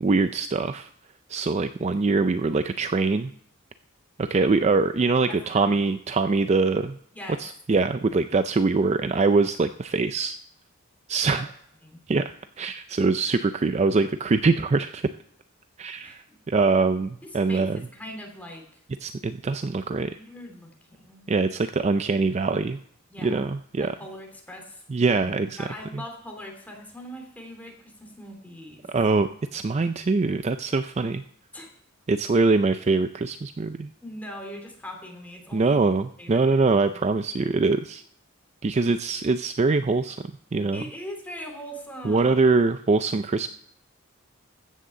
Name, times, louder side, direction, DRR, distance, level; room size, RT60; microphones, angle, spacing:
voice 1, 0.0-0.9 1.3-3.3 4.2-7.0 7.4-10.4 11.1-11.5 12.1-15.1 15.8-17.8 19.0-20.2 21.3-22.8 23.2-23.9 24.9-25.7 25.9-26.0 28.9-31.2 32.1-33.9 35.5-38.0 38.6-40.2 40.5-40.8 42.0-43.5, right 3 dB, 30° right, 10 dB, 0.4 m, -23 dB
voice 2, 5.3-5.9 7.1-7.4 11.3-11.4 11.8-12.0 16.0-16.4 17.2-18.7 20.1-21.2 23.1-23.4 23.8-24.8 25.2-28.9 31.5-31.7 34.0-35.8 36.2-36.4 36.9-37.0 40.7-42.4, equal, 10° left, 2 dB, 2.6 m, -41 dB
15.0 x 6.5 x 6.8 m, 0.66 s
head